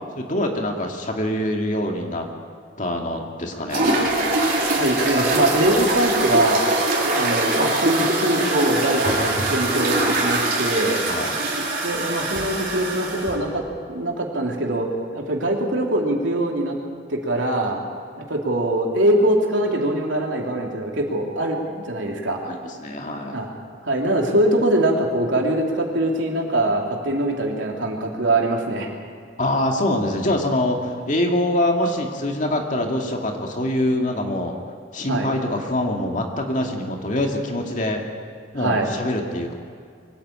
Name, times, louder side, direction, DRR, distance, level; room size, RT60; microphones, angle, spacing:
voice 1, 0.2-2.3 2.8-3.9 11.1-11.3 22.5-23.4 29.4-34.5 34.9-38.0 38.5-39.5, left 1 dB, 40° left, 2 dB, 2.4 m, -24 dB
sound 1, 3.7-13.3, right 2 dB, 50° right, 4.2 m, -22 dB
voice 2, 4.8-6.7 7.1-11.0 11.8-13.6 13.9-16.8 17.1-17.8 18.2-22.4 23.3-23.5 23.8-29.0 35.1-35.3 38.6-38.9, right 1 dB, 85° right, 0 dB, 3.3 m, -22 dB
23.5 x 14.5 x 8.9 m, 2.2 s
head